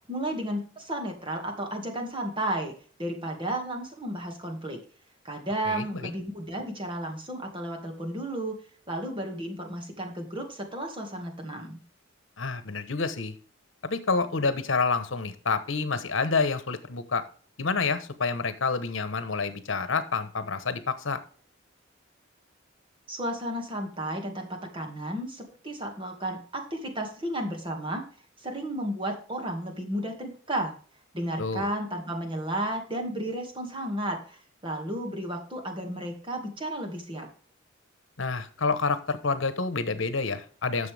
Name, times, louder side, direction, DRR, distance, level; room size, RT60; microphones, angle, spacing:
voice 1, 0.1-2.7 3.0-4.8 5.2-8.6 8.9-11.8 23.1-28.0 28.4-30.7 31.1-37.3, right 1 dB, 25° right, 2 dB, 2.1 m, -33 dB
voice 2, 5.7-6.0 12.4-13.3 13.8-17.2 17.6-21.2 31.4-31.7 38.2-40.9, left 4 dB, 75° left, 12 dB, 1.1 m, -28 dB
11.0 x 6.9 x 3.4 m, 0.43 s
head